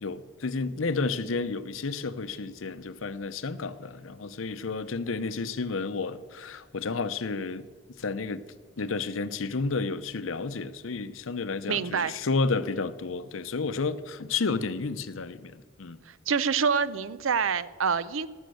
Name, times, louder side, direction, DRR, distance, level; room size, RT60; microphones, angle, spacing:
voice 1, 0.0-7.7 8.0-8.4 8.8-16.0, left 4 dB, 85° left, 0.7 m, -31 dB
voice 2, 11.7-12.1 16.1-18.3, right 6 dB, 90° right, 0.6 m, -26 dB
18.0 x 6.5 x 7.8 m
head